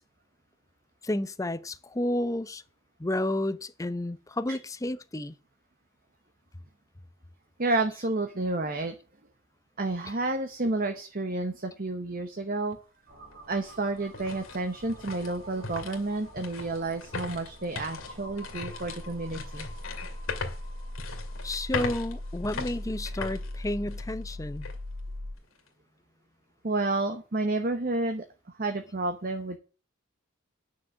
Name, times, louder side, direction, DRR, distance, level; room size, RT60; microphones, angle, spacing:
voice 1, 1.0-2.6 3.0-5.3 21.4-24.7, left 1 dB, 15° left, 0.6 m, -31 dB
voice 2, 7.6-8.9 9.8-12.8 13.5-19.7 26.6-29.6, right 2 dB, 45° right, 1.0 m, -30 dB
sound 1, 12.7-12.8 13.3-24.2 24.6-24.8 25.3-25.7, left 4 dB, 80° left, 2.3 m, -39 dB
sound 2, 13.1-25.3, left 1 dB, 70° right, 3.1 m, -41 dB
9.7 x 6.3 x 7.8 m
head